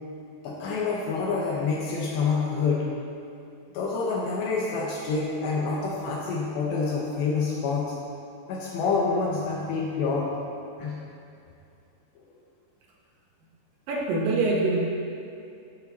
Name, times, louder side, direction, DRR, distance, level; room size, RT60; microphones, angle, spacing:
voice 1, 0.4-2.9 3.7-7.9 8.5-10.3 10.8-11.0, left 4 dB, 75° left, -3 dB, 3.0 m, -27 dB
voice 2, 13.9-14.8, right 3 dB, 70° right, -3 dB, 2.2 m, -24 dB
14.0 x 7.5 x 4.1 m, 2.6 s
omnidirectional pair, 5.4 m